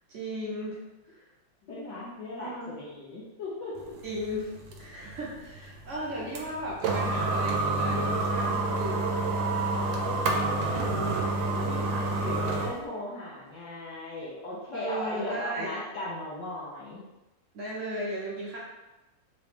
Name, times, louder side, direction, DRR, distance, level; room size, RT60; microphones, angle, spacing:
voice 1, 0.1-0.8 1.1-1.2 2.4-2.8 4.0-4.5 4.8-9.1 10.7-11.2 12.0-12.5 14.7-15.8 17.5-18.6, right 1 dB, 60° right, -5 dB, 0.8 m, -36 dB
voice 2, 1.7-3.7 9.7-17.0, left 2 dB, 65° left, -6 dB, 1.4 m, -38 dB
sound 1, 3.8-12.8, right 2 dB, 75° right, 1.3 m, -29 dB
3.9 x 3.2 x 3.2 m, 1.0 s
omnidirectional pair, 2.1 m